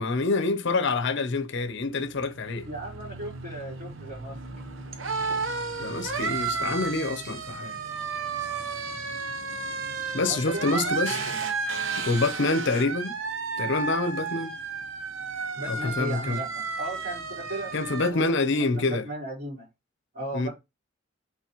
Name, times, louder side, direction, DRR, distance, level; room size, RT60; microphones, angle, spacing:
voice 1, 0.0-2.7 5.8-7.8 10.1-11.2 12.0-13.2 13.6-14.5 15.7-16.4 17.7-19.1 20.3-20.5, left 3 dB, 65° left, 0.8 m, -26 dB
sound 1, 1.7-18.1, right 4 dB, 80° right, 0.9 m, -33 dB
voice 2, 2.6-4.4 5.3-5.4 10.3-11.4 15.5-19.7 20.1-20.5, right 1 dB, 45° right, 4.5 m, -37 dB
8.3 x 4.0 x 3.0 m
head